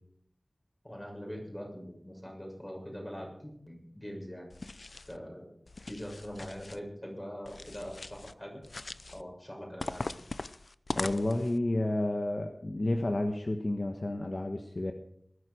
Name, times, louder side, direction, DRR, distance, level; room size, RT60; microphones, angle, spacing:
voice 1, 0.8-4.5 5.1-5.5 5.9-8.6 9.1-10.1, equal, 20° left, 0 dB, 6.6 m, -42 dB
sound 1, 4.5-5.2 5.7-6.8 7.4-8.3 8.6-9.2 9.8-11.6, left 2 dB, 65° left, 0.6 m, -40 dB
voice 2, 10.9-14.9, left 1 dB, 50° left, 5 dB, 1.2 m, -31 dB
20.0 x 11.5 x 5.1 m, 0.67 s
wide cardioid pair, 60°, 0 cm